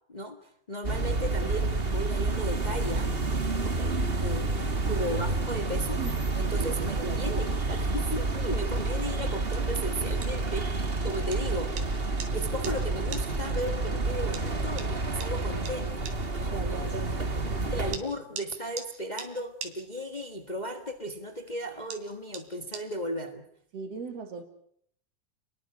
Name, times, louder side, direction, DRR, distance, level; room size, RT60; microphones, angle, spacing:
voice 1, 0.7-3.1 3.5-3.9 4.2-6.0 6.4-11.9 12.3-17.0 17.7-23.4, equal, 35° left, 0.7 m, -35 dB
sound 1, 0.8-18.0, right 3 dB, 30° right, 1.1 m, -29 dB
sound 2, 4.5-23.2, right 7 dB, 90° right, 4.2 m, -48 dB
voice 2, 6.5-7.4 16.5-18.3 23.7-24.4, right 5 dB, 50° right, 3.8 m, -40 dB
29.5 x 21.5 x 6.2 m
omnidirectional pair, 3.9 m